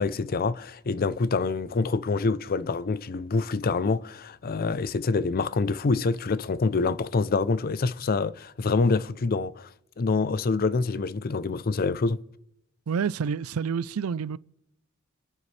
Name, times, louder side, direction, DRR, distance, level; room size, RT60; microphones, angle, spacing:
voice 1, 0.0-9.7 10.0-12.2, left 4 dB, 45° left, 0.5 m, -26 dB
voice 2, 12.9-14.4, right 6 dB, 85° right, 0.4 m, -28 dB
29.0 x 9.9 x 3.3 m
head